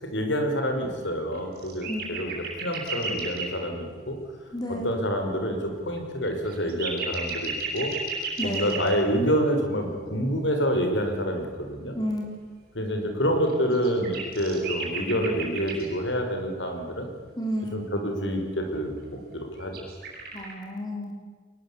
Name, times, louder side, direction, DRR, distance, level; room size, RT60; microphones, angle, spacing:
voice 1, 0.0-2.3 2.6-4.2 4.7-7.9 8.4-11.9 12.7-17.1 17.7-19.9, equal, 80° left, 4 dB, 5.0 m, -27 dB
sound 1, 1.3-3.5 6.0-6.1 6.3-8.9 13.5-15.9 19.6-20.5, right 4 dB, 55° right, 7.8 m, -33 dB
voice 2, 4.5-5.0 8.4-8.7 11.9-12.3 17.4-17.8 20.3-21.2, equal, 20° left, 1 dB, 3.6 m, -31 dB
23.0 x 21.0 x 8.6 m, 1.5 s
head